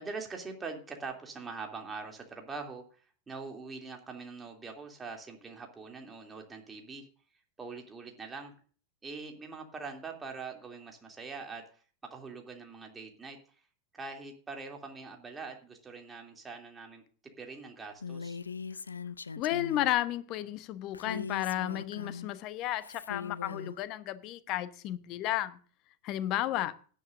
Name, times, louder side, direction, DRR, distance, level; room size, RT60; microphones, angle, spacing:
voice 1, 0.0-7.1 7.6-8.5 9.0-11.6 12.1-13.6 13.9-17.0 17.4-18.4, right 4 dB, 15° right, 2 dB, 2.9 m, -43 dB
Female speech woman speaking, 18.0-19.9 20.9-22.3 22.8-23.8, left 5 dB, 75° left, 0.5 m, -40 dB
voice 2, 19.4-25.6 26.0-26.7, left 14 dB, 40° left, 14 dB, 1.0 m, -33 dB
17.5 x 10.0 x 2.6 m, 0.40 s
figure-of-eight pair, 90°, 0 cm